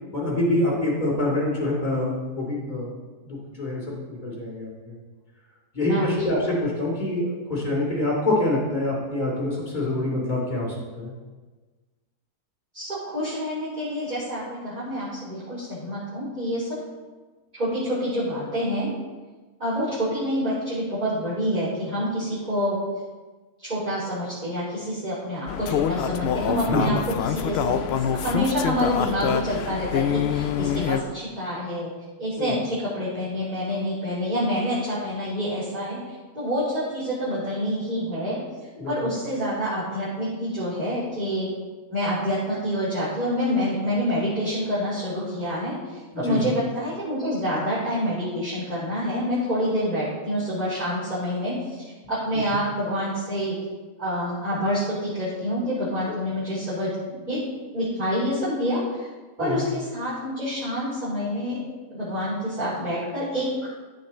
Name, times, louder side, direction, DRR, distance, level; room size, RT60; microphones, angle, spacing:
voice 1, 0.1-2.9 3.2-4.7 5.7-11.1 26.7-26.8 32.4-32.5 38.8-38.9 46.1-46.4 59.4-59.6, left 1 dB, 30° left, -4 dB, 3.1 m, -25 dB
voice 2, 5.9-6.4 12.7-16.8 17.5-18.9 19.6-22.8 23.6-27.0 27.2-31.9 32.2-38.4 38.9-41.5 41.9-53.5 54.0-56.9 57.3-59.1 59.4-61.6 61.9-63.5, equal, 30° right, -11 dB, 3.8 m, -27 dB
sound 1, 25.5-31.0, left 9 dB, 85° left, 0.5 m, -26 dB
15.0 x 5.5 x 4.3 m, 1.3 s
omnidirectional pair, 1.6 m